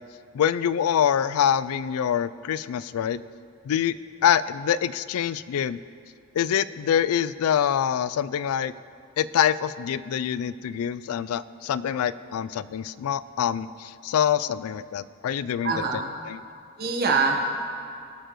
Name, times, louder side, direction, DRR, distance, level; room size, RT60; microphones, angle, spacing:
voice 1, 0.3-3.2 3.6-4.0 4.2-5.8 6.3-8.7 9.2-15.7 16.3-16.4, left 9 dB, 80° left, 16 dB, 0.3 m, -25 dB
voice 2, 15.6-16.1 16.8-17.6, right 4 dB, 45° right, 1 dB, 1.2 m, -24 dB
19.5 x 6.7 x 3.1 m, 2.5 s
head